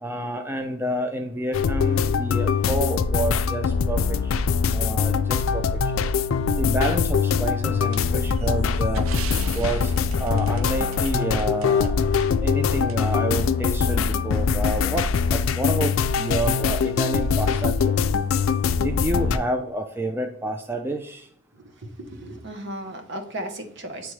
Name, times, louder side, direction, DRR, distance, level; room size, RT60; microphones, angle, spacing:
voice 1, 0.0-4.2 4.7-5.6 5.9-6.0 6.6-9.0 9.5-9.9 10.2-11.9 12.4-17.7 18.8-21.3, right 1 dB, 10° right, 0.4 m, -29 dB
sound 1, 1.5-19.4, left 5 dB, 75° left, 0.4 m, -23 dB
sound 2, 7.9-11.9 12.2-12.3 12.9-13.0, right 9 dB, 80° right, 0.5 m, -41 dB
voice 2, 21.5-24.1, right 1 dB, 60° right, 1.1 m, -36 dB
9.0 x 3.5 x 3.2 m
head